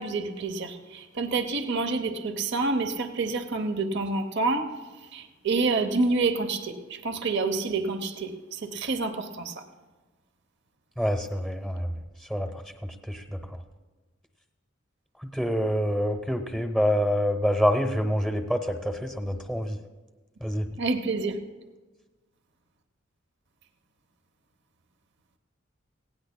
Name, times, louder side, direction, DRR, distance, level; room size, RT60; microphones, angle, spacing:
voice 1, 0.0-4.7 5.1-9.6 20.8-21.4, right 3 dB, 60° right, 8 dB, 0.8 m, -28 dB
voice 2, 11.0-11.9 12.2-13.6 15.2-19.8 20.4-20.7, equal, 5° right, 5 dB, 0.8 m, -27 dB
18.5 x 17.0 x 2.2 m, 1.3 s
head